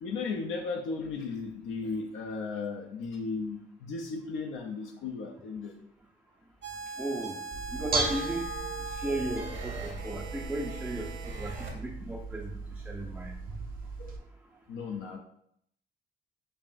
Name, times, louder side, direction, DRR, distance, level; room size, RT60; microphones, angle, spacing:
voice 1, 0.0-5.8 14.0-14.2 14.7-15.2, left 4 dB, 80° left, 0 dB, 0.5 m, -35 dB
sound 1, 6.6-11.7, right 4 dB, 70° right, 1.0 m, -40 dB
voice 2, 7.0-7.4 7.7-8.5 9.0-12.5 12.9-13.3, right 1 dB, 5° right, 0 dB, 0.4 m, -35 dB
Bell / Dishes pots and pans, 7.5-14.2, right 3 dB, 45° right, 0.6 m, -36 dB
5.4 x 2.4 x 2.5 m, 0.70 s
cardioid pair, 90°, 20 cm